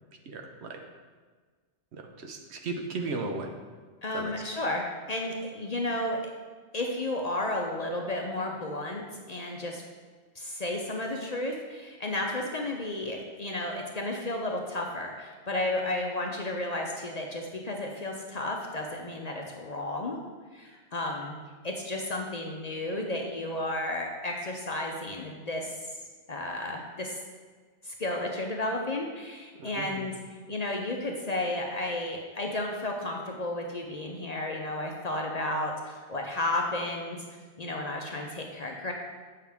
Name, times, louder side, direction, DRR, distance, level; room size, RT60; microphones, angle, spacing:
voice 1, 0.2-0.8 1.9-3.5 4.1-4.3 29.6-30.1, right 3 dB, 70° right, 3 dB, 1.1 m, -36 dB
voice 2, 4.0-6.2 6.7-9.8 10.4-20.2 20.5-21.3 21.6-25.8 26.3-27.2 27.8-30.1 30.5-37.2 37.6-38.9, left 1 dB, 45° left, 1 dB, 0.6 m, -33 dB
8.3 x 5.6 x 3.5 m, 1.5 s
omnidirectional pair, 1.2 m